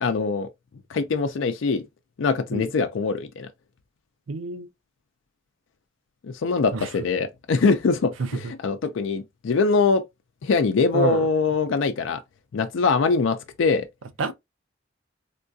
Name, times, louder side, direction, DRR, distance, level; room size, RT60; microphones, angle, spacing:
voice 1, 0.0-0.5 0.9-1.8 2.2-3.5 6.2-10.0 10.4-12.2 12.5-13.9, left 4 dB, 80° left, 0.4 m, -23 dB
voice 2, 4.3-4.7 6.7-6.9 8.2-8.3 10.9-11.3 14.2-14.3, right 4 dB, 90° right, 0.5 m, -27 dB
3.6 x 2.3 x 2.6 m
head